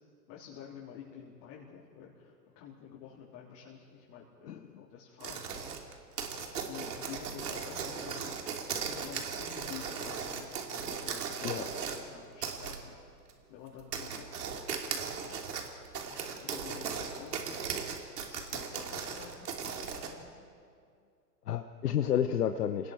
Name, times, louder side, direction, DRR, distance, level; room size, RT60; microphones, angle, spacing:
voice 1, 0.3-5.7 6.6-8.3 8.9-13.0 13.5-15.6 16.1-17.7 18.2-20.5, left 8 dB, 40° left, -5 dB, 3.9 m, -50 dB
sound 1, 5.2-12.0 12.4-12.8 13.3-13.4 13.8-20.1, right 6 dB, 65° right, 3.2 m, -37 dB
voice 2, 21.5-22.9, left 9 dB, 65° left, 8 dB, 1.1 m, -30 dB
29.0 x 19.5 x 4.6 m, 2.3 s
figure-of-eight pair, 110°, 50 cm